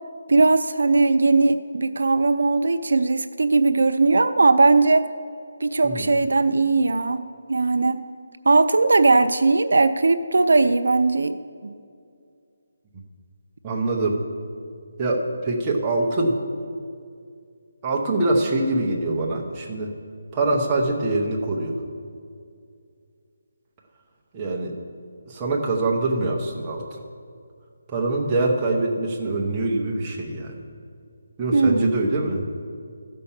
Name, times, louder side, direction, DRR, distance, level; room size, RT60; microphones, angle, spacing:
voice 1, 0.3-5.0 5.6-7.2 7.5-8.1 8.5-11.4 11.6-11.8 31.5-31.9, right 3 dB, 70° right, 10 dB, 0.5 m, -19 dB
voice 2, 13.6-14.2 15.0-16.4 17.8-19.9 20.3-21.8 24.3-24.7 25.3-27.0 27.9-30.6 31.4-32.6, right 2 dB, 10° right, -3 dB, 0.8 m, -24 dB
13.5 x 5.5 x 7.2 m, 2.3 s
hypercardioid pair, 180°, 0 cm